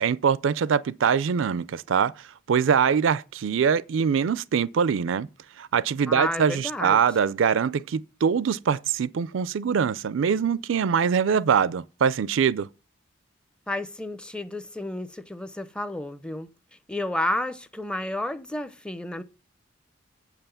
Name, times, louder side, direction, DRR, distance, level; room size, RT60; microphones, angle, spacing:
voice 1, 0.0-2.1 2.5-5.3 5.6-12.7, right 7 dB, 75° right, 0.4 m, -23 dB
voice 2, 6.1-7.0 13.7-16.5 16.9-19.2, left 1 dB, 5° left, 0.5 m, -31 dB
7.5 x 5.7 x 6.9 m
head